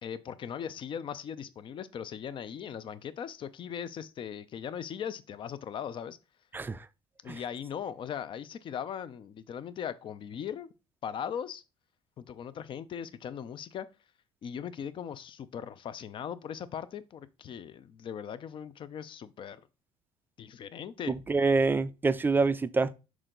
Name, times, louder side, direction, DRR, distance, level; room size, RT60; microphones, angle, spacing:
voice 1, 0.0-6.2 7.2-10.7 11.0-11.6 12.2-13.9 14.4-19.7 20.4-21.1, left 8 dB, 40° left, 0.6 m, -39 dB
voice 2, 6.5-6.8 7.3-7.4 21.1-22.9, right 4 dB, 15° right, 0.5 m, -26 dB
6.3 x 4.5 x 3.9 m
cardioid pair, 120°, 13 cm